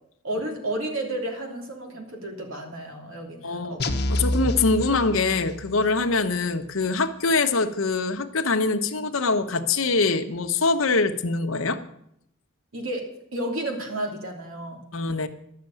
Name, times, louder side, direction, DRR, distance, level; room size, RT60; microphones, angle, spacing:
voice 1, 0.2-3.8 12.7-14.8, right 1 dB, 75° right, 2 dB, 3.0 m, -32 dB
voice 2, 3.4-3.8 4.1-11.8 14.9-15.3, left 3 dB, 75° left, 8 dB, 1.0 m, -24 dB
sound 1, 3.8-5.7, left 1 dB, 50° left, 1.0 m, -27 dB
11.5 x 6.7 x 9.0 m, 0.75 s
head